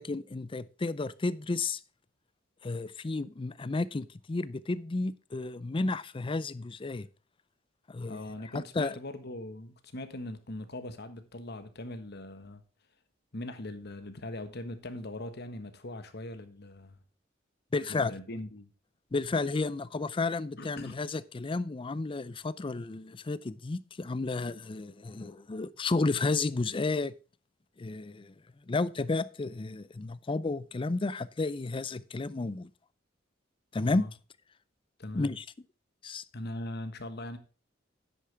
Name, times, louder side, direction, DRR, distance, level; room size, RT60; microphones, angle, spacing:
voice 1, 0.0-1.8 2.6-7.1 7.9-8.2 8.5-9.0 17.7-18.2 19.1-27.1 27.8-28.3 28.7-32.7 33.7-34.1 35.1-35.4 36.0-36.2, left 3 dB, 25° left, 0.5 m, -32 dB
voice 2, 8.1-12.6 13.3-17.0 17.9-18.7 20.6-21.0 33.8-34.1 35.0-35.3 36.3-37.4, left 1 dB, 55° left, 1.4 m, -40 dB
10.0 x 8.5 x 3.4 m
head